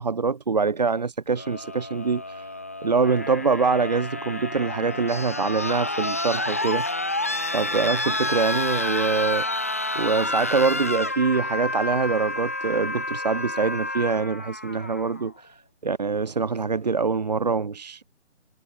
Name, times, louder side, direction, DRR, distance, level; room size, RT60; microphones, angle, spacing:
voice 1, 0.0-2.5 2.8-6.9 7.5-9.5 10.0-18.0, right 4 dB, 35° right, 2.5 m, -24 dB
sound 1, 1.3-15.3 16.5-16.6, left 2 dB, 10° left, 1.1 m, -29 dB
hypercardioid pair, 175°, 37 cm